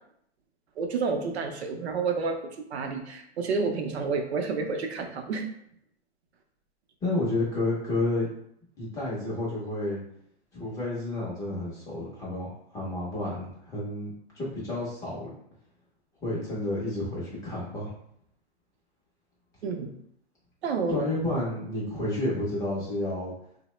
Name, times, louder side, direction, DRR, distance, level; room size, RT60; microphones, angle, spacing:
voice 1, 0.8-5.4 19.6-20.0 20.6-21.0, right 4 dB, 70° right, 4 dB, 0.6 m, -30 dB
voice 2, 7.0-8.3 8.8-10.0 10.5-15.3 16.2-17.9 20.9-23.3, left 2 dB, 10° left, -6 dB, 0.5 m, -30 dB
2.8 x 2.1 x 3.0 m, 0.69 s
hypercardioid pair, 140°, 34 cm